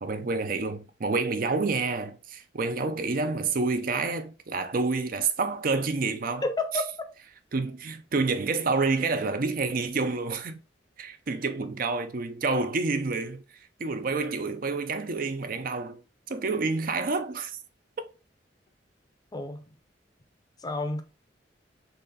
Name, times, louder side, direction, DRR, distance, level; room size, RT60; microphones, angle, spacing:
voice 1, 0.0-6.4 7.5-10.6 11.0-13.4 13.8-16.0 16.3-17.6, right 3 dB, 50° right, 0.5 m, -28 dB
voice 2, 6.4-6.9 19.3-19.6 20.6-21.0, left 2 dB, 20° left, 0.6 m, -30 dB
4.1 x 3.2 x 4.0 m
head